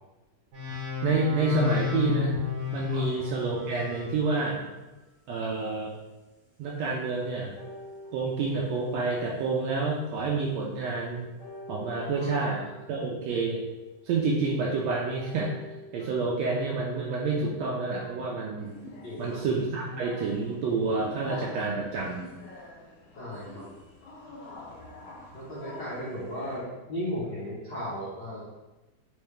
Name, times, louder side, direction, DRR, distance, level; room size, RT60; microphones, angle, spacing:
sound 1, 0.5-4.1, left 8 dB, 55° right, 1.8 m, -32 dB
voice 1, 1.0-2.4 2.7-4.6 5.3-5.9 6.6-7.5 8.1-11.3 11.7-12.6 12.9-13.6 14.0-15.5 15.9-18.7 19.2-22.3, right 3 dB, 80° right, -3 dB, 1.5 m, -28 dB
sound 2, 1.2-2.3 3.7-5.4 6.1-6.2 7.6-10.5 11.4-14.0 15.1-18.5, left 1 dB, 50° left, 2.1 m, -49 dB
voice 2, 12.2-12.7 19.0-19.4 23.2-23.7 25.3-28.5, equal, 70° left, -10 dB, 1.1 m, -36 dB
sound 3, 18.6-26.6, left 2 dB, 90° left, 1.0 m, -47 dB
4.6 x 3.4 x 3.2 m, 1.1 s
omnidirectional pair, 3.5 m